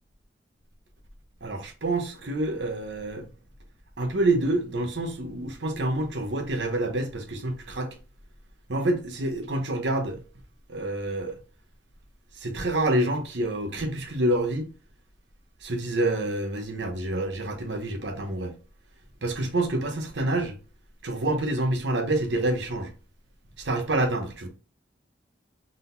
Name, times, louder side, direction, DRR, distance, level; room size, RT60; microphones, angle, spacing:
voice 1, 1.4-3.3 4.0-7.9 8.7-10.2 10.7-11.4 12.4-14.7 15.6-18.6 19.2-20.5 21.0-22.9 23.6-24.5, right 1 dB, 90° right, 0.9 m, -27 dB
3.9 x 3.8 x 2.6 m
head